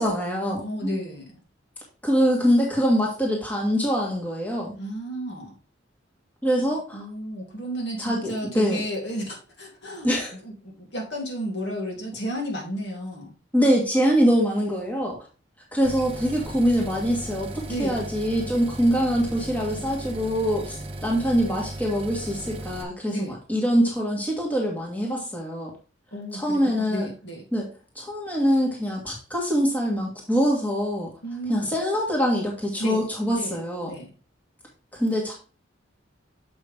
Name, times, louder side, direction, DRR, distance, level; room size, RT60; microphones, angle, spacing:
voice 1, 0.0-1.0 2.0-4.8 6.4-7.0 8.0-8.8 10.0-10.4 13.5-15.2 15.7-25.7 26.3-27.1 27.5-27.7 28.0-31.1 31.5-33.9 34.9-35.3, equal, 10° left, -2 dB, 1.8 m, -24 dB
voice 2, 0.6-1.4 4.8-5.5 6.5-10.1 10.4-13.4 17.7-18.1 23.1-23.3 26.1-27.5 31.2-31.7 32.8-33.0 33.3-33.6 33.8-34.1, equal, 60° left, -1 dB, 2.7 m, -33 dB
sound 1, 15.8-22.8, right 1 dB, 30° right, 1.0 m, -36 dB
6.9 x 5.6 x 3.5 m, 0.34 s
head